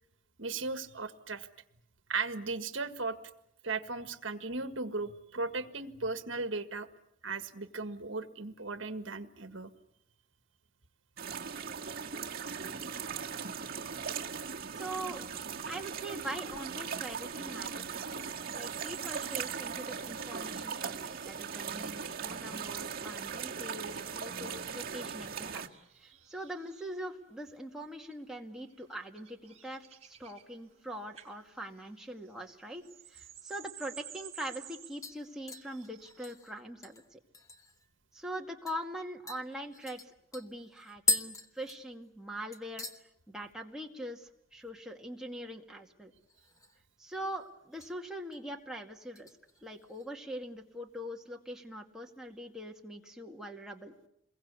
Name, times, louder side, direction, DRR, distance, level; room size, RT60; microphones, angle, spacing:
voice 1, 0.4-1.5 2.1-3.2 3.6-6.9 7.2-9.7 20.4-20.5, right 3 dB, 65° right, 9 dB, 1.7 m, -36 dB
sound 1, 11.2-25.7, right 6 dB, 45° right, 1.8 m, -39 dB
voice 2, 14.8-15.2 15.7-25.6 26.0-37.2 38.1-42.9 43.3-46.1 47.0-49.3 49.6-53.9, right 1 dB, 5° right, 0 dB, 2.1 m, -43 dB
sound 2, 17.8-19.7 20.5-27.0 27.8-28.2 28.7-30.8 31.1-31.3 31.6-36.3, right 10 dB, 30° right, 4.7 m, -53 dB
sound 3, 33.9-34.0 34.4-34.7 35.0-37.9 38.2-38.3 38.7-38.8 39.3-42.3 42.5-43.0 43.4-43.8 44.0-44.1 46.2-46.9 47.2-47.9 48.3-48.6 49.2-50.1 50.4-50.5, left 3 dB, 15° left, 1.4 m, -38 dB
28.0 x 22.5 x 8.3 m, 0.79 s
head